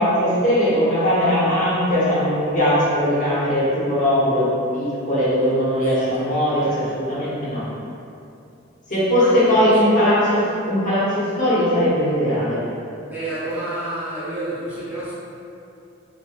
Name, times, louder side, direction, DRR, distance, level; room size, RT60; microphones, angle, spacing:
voice 1, 0.0-7.6 8.9-10.4 10.7-12.6, equal, 40° left, -10 dB, 0.8 m, -19 dB
voice 2, 5.7-6.8 9.1-10.2 13.1-15.1, right 1 dB, 10° right, -10 dB, 0.4 m, -30 dB
2.9 x 2.1 x 2.3 m, 2.6 s
head